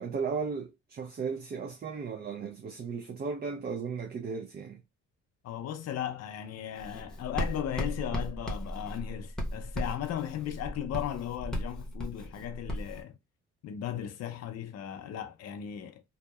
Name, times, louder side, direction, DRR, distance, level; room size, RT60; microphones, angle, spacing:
voice 1, 0.0-4.8, right 5 dB, 35° right, 0.4 m, -35 dB
voice 2, 5.4-13.2 13.6-16.0, left 10 dB, 55° left, 0.5 m, -36 dB
Writing, 6.8-13.0, equal, ahead, 0.9 m, -36 dB
2.7 x 2.1 x 2.2 m
cardioid pair, 90°, 30 cm